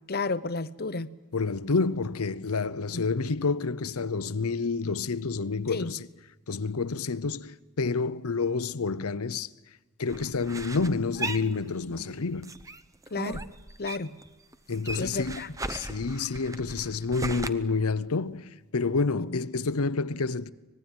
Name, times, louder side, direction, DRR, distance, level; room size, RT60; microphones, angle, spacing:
voice 1, 0.1-1.1 2.9-3.0 5.7-5.9 13.1-13.4 13.8-14.1 15.0-15.6 19.1-19.5, left 3 dB, 45° left, 0.8 m, -32 dB
voice 2, 1.3-6.1 6.5-9.5 10.0-12.6 14.7-15.4 15.7-20.5, left 4 dB, 80° left, 0.8 m, -29 dB
sound 1, 10.1-12.1 12.4-14.3 14.5-17.5, right 2 dB, 15° right, 0.7 m, -37 dB
25.0 x 20.0 x 9.0 m
head